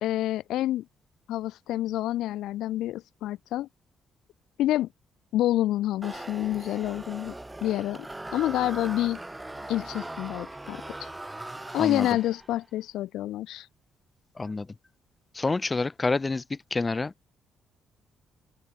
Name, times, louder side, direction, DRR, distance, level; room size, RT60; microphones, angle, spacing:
voice 1, 0.0-0.8 1.3-3.7 4.6-4.9 5.3-7.3 7.6-9.2 9.7-11.1 11.7-13.7, left 14 dB, 85° left, 0.9 m, -28 dB
sound 1, 6.0-12.6, right 2 dB, 10° right, 3.1 m, -40 dB
voice 2, 15.3-17.1, left 3 dB, 25° left, 1.4 m, -28 dB
open air
cardioid pair, 90°, 0 cm